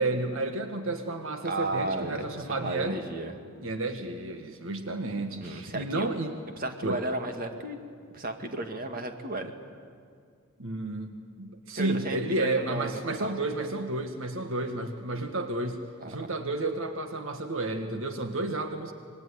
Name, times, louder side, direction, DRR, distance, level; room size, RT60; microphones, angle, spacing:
voice 1, 0.0-3.0 3.6-6.3 6.8-7.0 10.6-15.8 16.0-18.9, right 2 dB, 65° right, 6 dB, 1.7 m, -31 dB
voice 2, 1.4-3.3 5.4-6.1 6.6-7.8 8.1-9.5 11.8-13.3 16.0-16.3, right 2 dB, 40° right, 5 dB, 2.2 m, -34 dB
26.0 x 21.0 x 9.9 m, 2.2 s
head